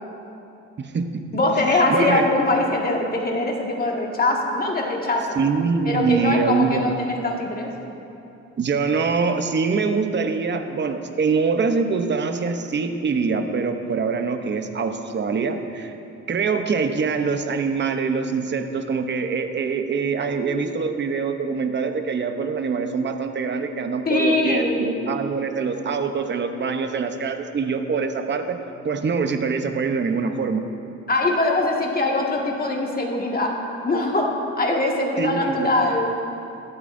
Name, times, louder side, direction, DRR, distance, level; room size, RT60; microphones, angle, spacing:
voice 1, 0.8-1.2 1.7-2.3 5.4-6.9 8.6-15.9 16.3-28.6 28.8-30.6 35.2-35.7, right 5 dB, 35° right, 6 dB, 0.9 m, -24 dB
voice 2, 1.3-5.4 5.9-7.7 24.1-24.8 31.1-33.5 33.8-34.3 34.6-36.1, left 2 dB, 30° left, -1 dB, 1.9 m, -22 dB
15.5 x 12.0 x 2.7 m, 2.8 s
cardioid pair, 90°, 30 cm